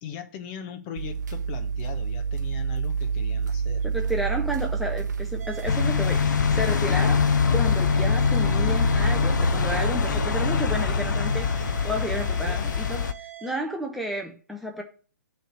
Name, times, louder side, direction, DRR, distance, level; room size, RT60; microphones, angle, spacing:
voice 1, 0.0-3.9 4.5-4.6 7.1-7.3 10.0-10.3 10.9-11.8 12.3-12.8, left 7 dB, 30° left, 0.9 m, -40 dB
sound 1, 1.0-12.5, right 6 dB, 65° right, 0.7 m, -30 dB
voice 2, 3.8-11.6 11.8-14.8, equal, ahead, 0.6 m, -32 dB
sound 2, 5.4-13.5, right 13 dB, 45° right, 1.3 m, -42 dB
sound 3, 5.7-13.1, left 6 dB, 75° left, 0.5 m, -23 dB
7.7 x 3.4 x 6.4 m
hypercardioid pair, 140°, 10 cm